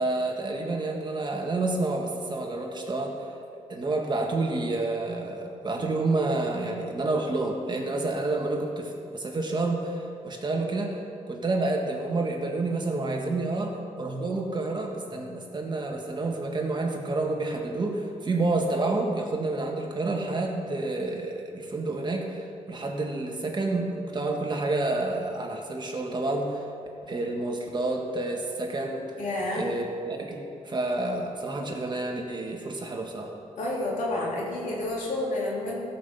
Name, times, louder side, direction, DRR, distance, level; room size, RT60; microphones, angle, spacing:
voice 1, 0.0-3.2 3.7-11.0 11.3-26.6 27.0-29.1 29.5-33.3, right 2 dB, 35° right, 1 dB, 1.7 m, -29 dB
voice 2, 29.2-29.7 33.6-35.9, left 1 dB, 90° left, -4 dB, 3.2 m, -29 dB
15.5 x 5.9 x 7.2 m, 2.5 s
cardioid pair, 100°, 13 cm